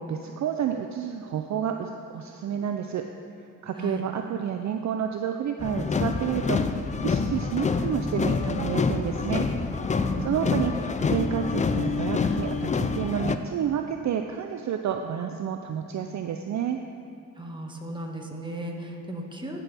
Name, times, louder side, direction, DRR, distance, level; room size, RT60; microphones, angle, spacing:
voice 1, 0.0-3.0 3.6-6.6 7.0-9.5 10.0-16.8, right 9 dB, 50° right, 5 dB, 0.5 m, -30 dB
sound 1, 5.6-13.4, left 4 dB, 20° left, 0.4 m, -27 dB
voice 2, 10.0-10.5 17.4-19.6, equal, 10° right, 0 dB, 1.6 m, -36 dB
15.5 x 5.9 x 3.5 m, 2.5 s
cardioid pair, 70°, 37 cm